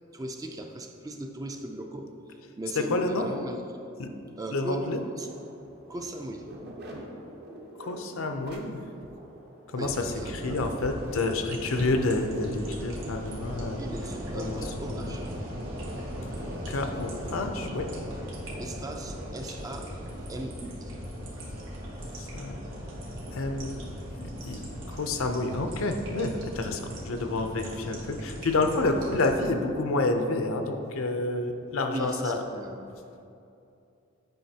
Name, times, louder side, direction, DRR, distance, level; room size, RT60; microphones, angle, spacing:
voice 1, 0.1-3.6 4.4-5.3 5.7-6.5 6.8-7.2 9.8-10.6 13.8-15.3 18.6-20.0 20.3-20.9 29.1-29.3 31.9-32.9, right 1 dB, 15° right, 3 dB, 0.4 m, -38 dB
voice 2, 2.8-3.3 4.0-4.1 4.5-5.1 7.8-8.8 9.7-13.8 14.4-14.6 14.9-15.2 16.7-17.9 22.2-22.5 23.3-23.7 24.2-32.4, left 2 dB, 70° left, 5 dB, 0.6 m, -29 dB
sound 1, 5.3-20.4, right 1 dB, 50° right, 0.8 m, -47 dB
sound 2, 9.8-29.5, equal, 65° right, 1.4 m, -38 dB
9.1 x 5.2 x 2.8 m, 2.6 s
head